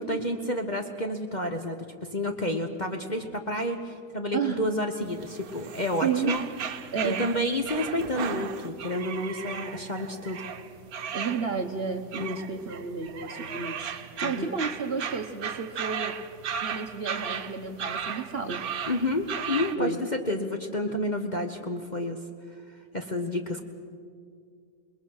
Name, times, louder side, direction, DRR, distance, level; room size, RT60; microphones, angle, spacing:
voice 1, 0.0-6.4 7.0-10.4 12.2-12.4 14.2-14.5 18.9-22.2 22.9-23.6, left 1 dB, 30° left, 4 dB, 1.0 m, -30 dB
voice 2, 4.3-4.7 6.0-6.4 6.9-7.4 11.1-13.9 14.2-16.2 16.6-18.7 19.8-20.0, right 5 dB, 45° right, 5 dB, 1.0 m, -31 dB
sound 1, 5.0-19.7, right 7 dB, 60° right, 1.3 m, -36 dB
28.0 x 21.0 x 6.4 m, 2.2 s
omnidirectional pair, 1.9 m